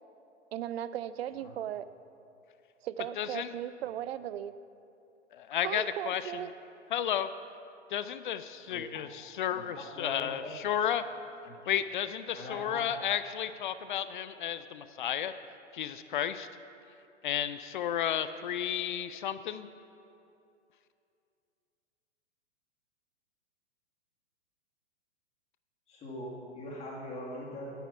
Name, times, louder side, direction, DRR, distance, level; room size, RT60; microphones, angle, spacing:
voice 1, 0.5-1.9 2.8-4.5 5.6-6.5, right 10 dB, 60° right, 14 dB, 0.5 m, -37 dB
voice 2, 3.2-3.5 5.3-6.2 6.9-7.3 7.9-11.0 11.7-15.3 15.7-16.5 17.2-19.7, left 10 dB, 45° left, 13 dB, 0.4 m, -32 dB
voice 3, 9.9-10.5 11.4-11.5 12.3-12.8 25.9-27.7, left 1 dB, 20° left, -4 dB, 2.0 m, -41 dB
9.3 x 9.2 x 5.6 m, 2.6 s
figure-of-eight pair, 115°, 36 cm